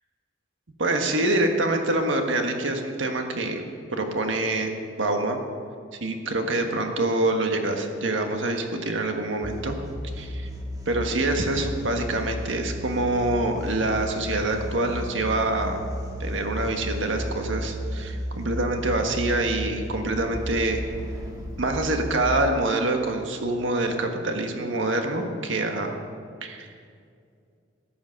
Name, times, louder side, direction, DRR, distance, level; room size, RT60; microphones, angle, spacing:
voice 1, 0.8-3.6 3.9-4.7 5.0-5.4 6.0-9.8 10.2-10.5 10.8-15.8 16.2-20.8 21.6-25.9 26.4-26.7, right 2 dB, 90° right, 4 dB, 1.5 m, -25 dB
sound 1, 9.4-22.3, equal, 20° right, 1.7 m, -34 dB
14.0 x 10.5 x 6.4 m, 2.3 s
head